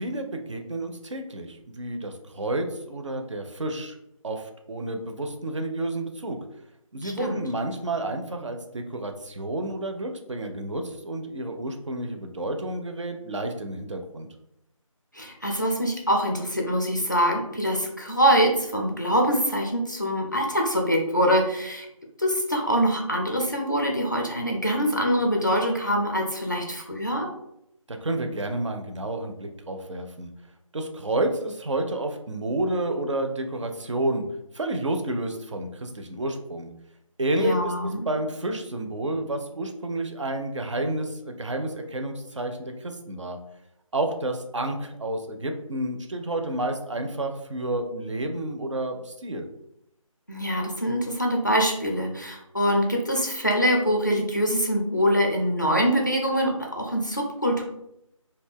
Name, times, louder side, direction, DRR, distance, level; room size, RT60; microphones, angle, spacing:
voice 1, 0.0-3.9 4.2-6.4 6.9-14.3 27.9-30.3 30.7-34.2 34.5-36.7 37.2-43.4 43.9-49.5, right 1 dB, 60° right, 5 dB, 0.4 m, -30 dB
voice 2, 7.0-7.4 15.1-21.9 22.2-27.3 37.4-38.1 50.3-57.6, equal, 35° left, 0 dB, 0.4 m, -24 dB
2.4 x 2.2 x 3.4 m, 0.82 s
figure-of-eight pair, 175°, 18 cm